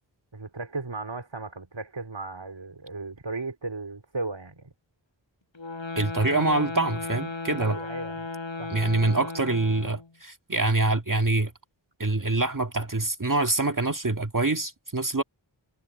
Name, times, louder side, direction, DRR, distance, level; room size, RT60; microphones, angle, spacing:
voice 1, 0.3-4.7 7.6-8.3 8.6-8.8, right 3 dB, 70° right, 4.3 m, -36 dB
sound 1, 5.5-10.1, left 3 dB, 75° left, 6.8 m, -35 dB
voice 2, 6.0-7.8 8.7-11.5 12.0-15.2, right 2 dB, 45° right, 1.9 m, -25 dB
wide cardioid pair, 50°, 46 cm